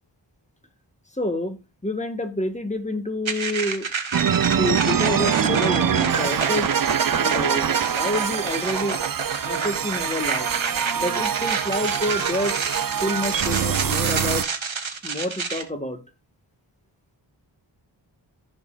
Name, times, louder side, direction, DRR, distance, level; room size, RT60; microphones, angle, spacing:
voice 1, 1.1-1.6 1.8-3.9 4.5-6.7 7.1-9.0 9.4-10.5 10.9-12.6 13.0-14.5 15.0-16.0, left 1 dB, 15° left, 1.6 m, -28 dB
sound 1, 3.2-15.6, right 5 dB, 75° right, 1.2 m, -29 dB
sound 2, 4.1-14.4, right 8 dB, 45° right, 0.5 m, -24 dB
14.5 x 5.3 x 2.4 m
wide cardioid pair, 45°, 48 cm